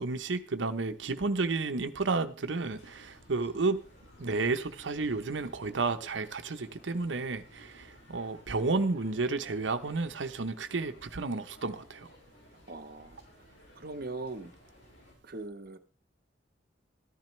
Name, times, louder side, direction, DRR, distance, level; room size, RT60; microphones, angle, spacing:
voice 1, 0.0-3.8 4.2-12.1, right 3 dB, 90° right, 0.8 m, -31 dB
sound 1, 2.5-15.1, left 1 dB, 70° left, 5.4 m, -57 dB
voice 2, 12.7-13.2 13.8-14.5 15.2-15.8, right 2 dB, 55° right, 1.1 m, -40 dB
14.0 x 10.5 x 3.2 m
head